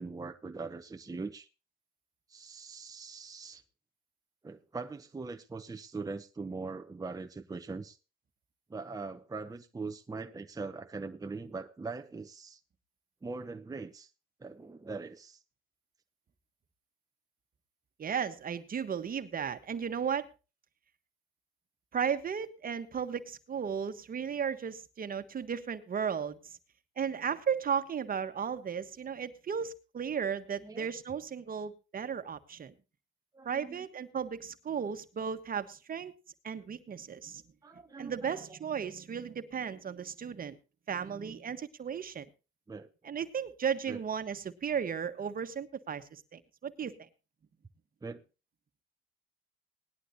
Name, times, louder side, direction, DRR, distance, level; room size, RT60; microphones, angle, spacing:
voice 1, 0.0-1.5 2.3-3.6 4.4-8.0 8.7-12.6 13.2-14.1 14.4-15.4 30.4-30.9 33.3-33.9 37.6-38.6 42.7-42.9 43.9-44.0 48.0-48.2, right 4 dB, 20° right, 0.8 m, -41 dB
voice 2, 18.0-20.3 21.9-26.6 27.0-32.7 33.4-36.1 36.4-37.4 38.0-40.6 40.9-42.3 43.0-47.1, right 7 dB, 45° right, 1.4 m, -35 dB
19.0 x 11.5 x 2.8 m
cardioid pair, 90°, 20 cm